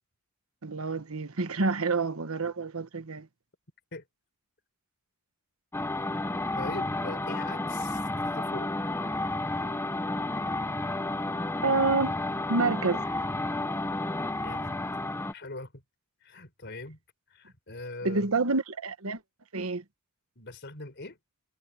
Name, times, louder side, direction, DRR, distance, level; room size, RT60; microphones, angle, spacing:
voice 1, 0.6-3.3 11.6-12.1 12.5-13.0 18.0-19.2 19.5-19.8, right 3 dB, 70° right, 1.3 m, -28 dB
sound 1, 5.7-15.3, left 2 dB, 10° left, 0.7 m, -31 dB
voice 2, 6.6-8.1 8.3-8.9 14.3-14.8 15.3-15.8 16.2-17.0 17.3-18.4 20.4-21.2, left 2 dB, 50° left, 4.2 m, -41 dB
head